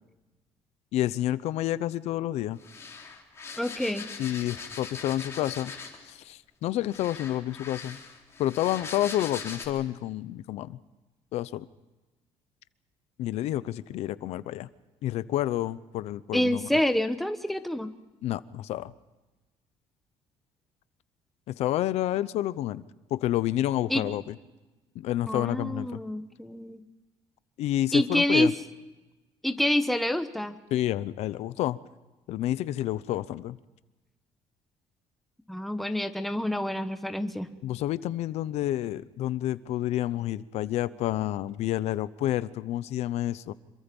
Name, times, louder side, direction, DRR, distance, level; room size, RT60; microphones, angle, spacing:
voice 1, 0.9-2.6 4.2-5.7 6.0-8.0 8.4-10.8 11.3-11.7 13.2-14.7 15.0-16.7 18.2-18.9 21.5-22.8 23.1-24.3 24.9-26.0 27.6-28.5 30.7-31.8 32.3-33.6 37.6-43.5, left 13 dB, 70° left, 16 dB, 0.8 m, -29 dB
sound 1, 2.6-6.1 6.9-9.7, left 5 dB, 25° left, 3.9 m, -41 dB
voice 2, 3.6-4.0 16.3-17.9 23.9-24.0 25.3-26.8 27.9-28.5 29.4-30.5 35.5-37.5, left 1 dB, ahead, 7 dB, 1.2 m, -27 dB
26.5 x 23.5 x 5.4 m, 1.1 s
cardioid pair, 165°, 11 cm